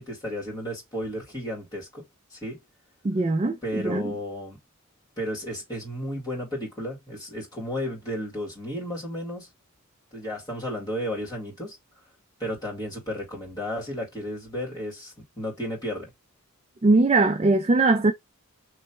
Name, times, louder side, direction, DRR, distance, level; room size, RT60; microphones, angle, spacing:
voice 1, 0.0-2.0 2.3-2.6 3.6-4.6 5.2-9.5 10.1-11.8 12.4-16.1, equal, 20° left, 2.3 m, -33 dB
voice 2, 3.0-4.1 16.8-18.1, right 3 dB, 30° right, 0.4 m, -21 dB
3.2 x 3.1 x 4.3 m
head